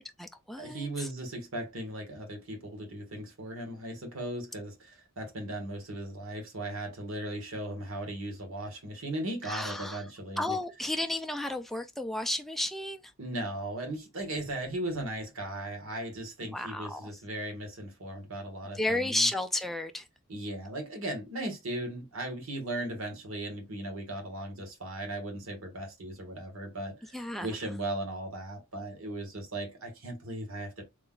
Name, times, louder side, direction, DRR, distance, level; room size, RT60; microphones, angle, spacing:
voice 1, 0.0-0.9 9.5-10.0 10.4-13.0 16.5-17.0 18.8-20.0 27.1-27.5, left 1 dB, ahead, 0.3 m, -32 dB
voice 2, 0.6-10.6 13.2-19.3 20.3-30.8, right 1 dB, 70° right, 1.4 m, -37 dB
3.7 x 3.2 x 2.3 m
head